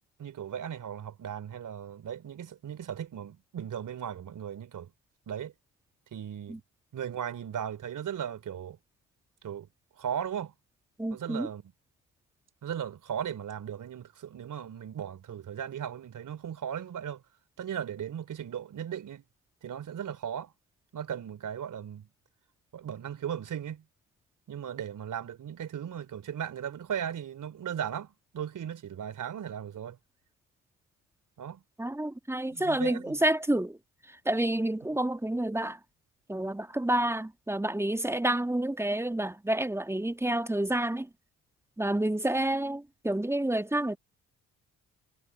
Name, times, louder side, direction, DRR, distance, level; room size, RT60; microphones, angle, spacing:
voice 1, 0.2-4.9 5.3-5.5 6.1-6.6 6.9-8.8 9.4-9.7 10.0-10.5 11.1-11.7 12.6-17.2 17.6-19.2 19.6-20.5 20.9-22.1 22.7-23.8 24.5-30.0 31.4-31.6 32.5-33.2, right 9 dB, 45° right, 3.5 m, -37 dB
voice 2, 11.0-11.5 31.8-33.8 34.3-35.8 36.3-41.1 41.8-44.0, right 1 dB, 5° right, 1.8 m, -29 dB
figure-of-eight pair, 45°, 42 cm